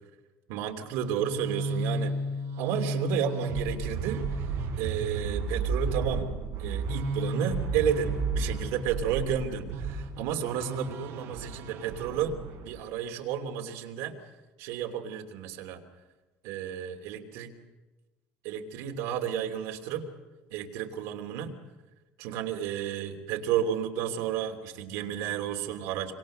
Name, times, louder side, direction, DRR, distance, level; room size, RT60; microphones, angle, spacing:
voice 1, 0.5-2.1 2.6-4.5 4.8-6.3 6.6-12.4 12.6-14.2 14.6-15.8 16.4-17.5 18.4-20.1 20.5-21.5 22.2-26.1, right 8 dB, 75° right, 4 dB, 2.8 m, -32 dB
sound 1, 0.9-12.8, right 3 dB, 55° right, 5.3 m, -33 dB
26.0 x 25.0 x 6.5 m, 1.2 s
cardioid pair, 170°, 5 cm